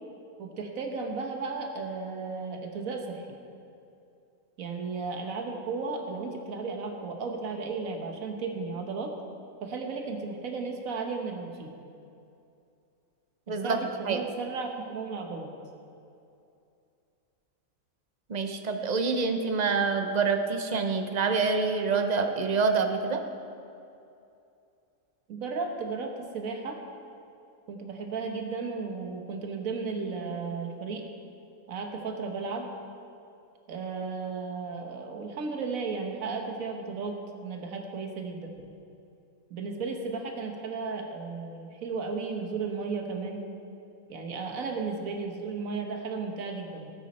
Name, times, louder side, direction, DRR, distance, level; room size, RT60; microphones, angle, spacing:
voice 1, 0.4-3.3 4.6-9.1 9.6-11.7 13.6-15.5 25.3-26.8 27.7-31.0 31.7-32.7 33.7-38.5 39.5-43.5 44.1-46.9, right 4 dB, 75° right, 3 dB, 1.6 m, -34 dB
voice 2, 13.5-13.8 14.1-14.2 18.3-23.2, right 4 dB, 35° right, 5 dB, 0.8 m, -26 dB
18.0 x 9.5 x 4.3 m, 2.6 s
omnidirectional pair, 1.5 m